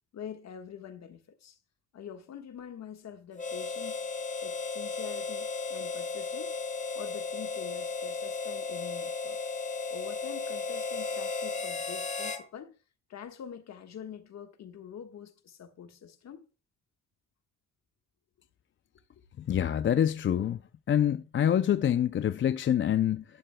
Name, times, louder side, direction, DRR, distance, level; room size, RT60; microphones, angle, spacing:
voice 1, 0.1-1.6 1.9-4.1 4.4-6.6 6.9-9.4 9.9-12.8 13.1-16.5, left 8 dB, 60° left, 1.6 m, -45 dB
Harmonica, 3.4-12.5, left 4 dB, 25° left, 1.3 m, -35 dB
voice 2, 19.5-20.6 20.9-23.2, left 10 dB, 40° left, 0.5 m, -26 dB
11.5 x 11.0 x 2.3 m
cardioid pair, 90°, 30 cm